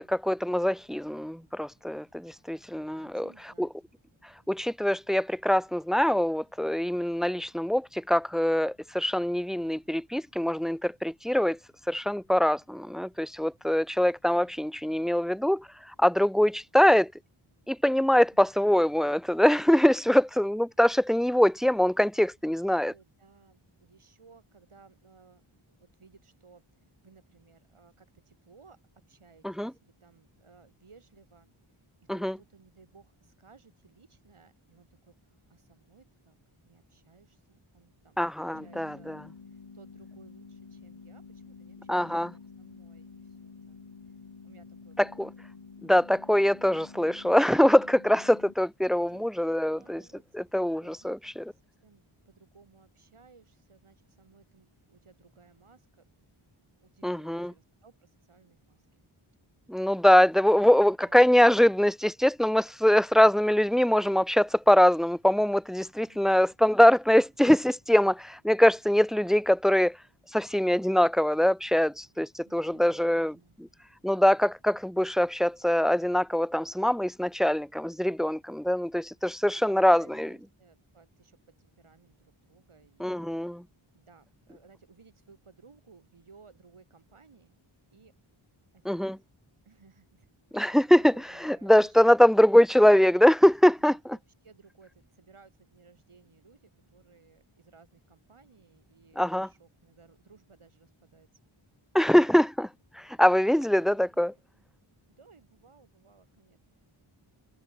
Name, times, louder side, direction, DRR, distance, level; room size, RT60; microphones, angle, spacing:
voice 1, 0.0-3.3 3.6-3.7 4.5-11.6 11.9-17.1 17.7-22.9 29.4-29.7 32.1-32.4 38.2-39.1 41.9-42.3 45.2-45.3 45.8-50.0 50.3-51.2 57.0-57.5 59.7-70.0 70.3-73.3 74.0-80.3 83.0-83.6 88.9-89.2 90.5-91.1 91.4-94.2 99.2-99.5 101.9-102.7 102.9-104.3, left 1 dB, ahead, 0.3 m, -23 dB
voice 2, 2.6-3.7 14.3-14.7 15.0-15.4 18.3-18.5 22.8-25.4 25.7-36.4 36.6-45.3 49.1-50.5 50.8-56.1 56.8-58.9 61.0-61.2 66.0-66.5 72.4-73.6 79.4-83.2 83.9-87.6 87.9-88.2 88.7-89.1 89.6-90.3 90.7-92.4 93.8-101.4 102.1-102.3 103.7-104.6 105.1-106.6, right 5 dB, 75° right, 7.1 m, -59 dB
sound 1, 38.5-48.5, left 5 dB, 70° left, 4.5 m, -49 dB
wide cardioid pair, 50°, 50 cm